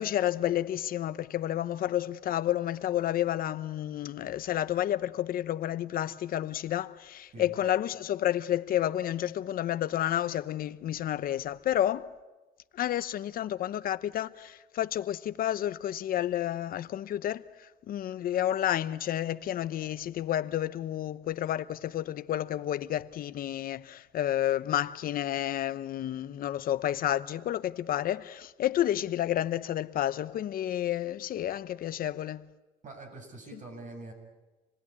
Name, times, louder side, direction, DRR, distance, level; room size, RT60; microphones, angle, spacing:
voice 1, 0.0-12.1 12.7-32.4, left 12 dB, 60° left, 0.9 m, -30 dB
voice 2, 32.8-34.1, right 2 dB, 50° right, 7.8 m, -44 dB
28.0 x 20.0 x 9.7 m
cardioid pair, 110°, 17 cm